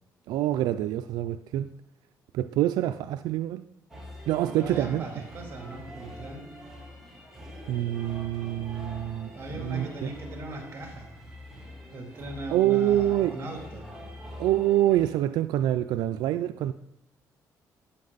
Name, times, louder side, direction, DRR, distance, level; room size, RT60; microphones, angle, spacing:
voice 1, 0.3-1.7 2.3-3.6 4.3-5.0 7.7-10.1 12.5-13.4 14.4-16.7, right 13 dB, 90° right, 0.4 m, -26 dB
sound 1, 3.9-15.1, left 1 dB, 5° right, 3.0 m, -44 dB
voice 2, 4.5-6.4 9.3-11.1 11.9-13.8, right 2 dB, 40° right, 3.3 m, -39 dB
12.5 x 8.6 x 4.0 m
cardioid pair, 110°, 7 cm